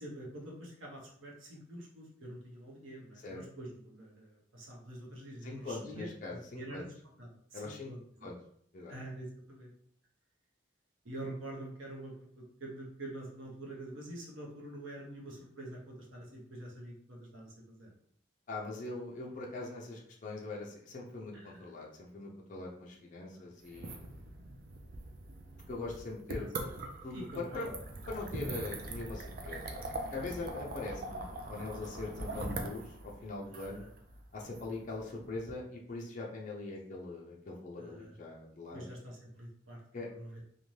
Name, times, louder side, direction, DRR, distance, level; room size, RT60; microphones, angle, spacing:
voice 1, 0.0-6.9 7.2-8.3 8.9-9.7 11.0-12.1 12.6-17.9 21.3-21.6 23.3-23.4 26.3-26.7 27.1-27.7 37.8-38.1 38.7-39.8 40.1-40.3, right 1 dB, 80° right, -2 dB, 0.8 m, -46 dB
voice 2, 5.4-6.9 7.5-7.9 8.2-8.4 8.7-8.9 18.5-24.3 25.7-26.6 27.0-27.7 28.1-33.9 34.3-38.9 39.9-40.1, left 3 dB, 40° left, -2 dB, 0.5 m, -42 dB
sound 1, 23.6-35.5, right 2 dB, 45° right, 0.4 m, -42 dB
2.6 x 2.1 x 3.1 m, 0.66 s
head